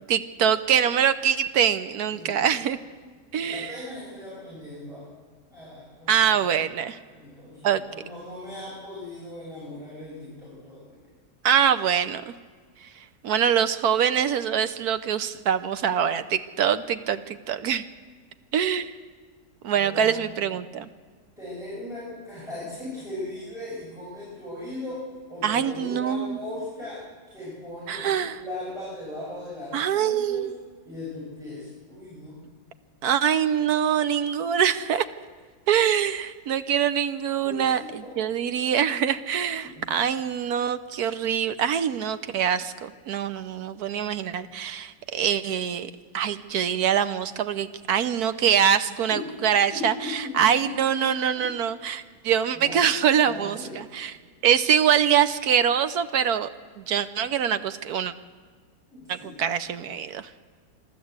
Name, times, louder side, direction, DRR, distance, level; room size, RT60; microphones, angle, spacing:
voice 1, 0.1-2.8 3.3-3.7 6.1-7.0 7.6-7.8 11.4-12.3 13.2-17.8 18.5-18.9 19.6-20.9 25.4-26.4 27.9-28.4 29.7-30.5 33.0-35.1 35.7-54.2 54.4-56.5 56.8-58.1 59.1-60.3, right 8 dB, 70° right, 12 dB, 1.2 m, -24 dB
voice 2, 2.1-2.5 3.2-5.1 5.5-6.4 7.1-10.9 19.7-20.5 21.4-25.0 25.3-27.0 27.3-28.1 28.4-30.4 30.8-32.4 37.4-38.1 39.7-39.8 49.1-49.2 49.7-51.0 51.3-51.4 52.5-52.8 53.2-53.8 58.9-59.4, left 2 dB, ahead, -9 dB, 6.6 m, -38 dB
26.0 x 12.5 x 8.1 m, 1.5 s
omnidirectional pair, 1.8 m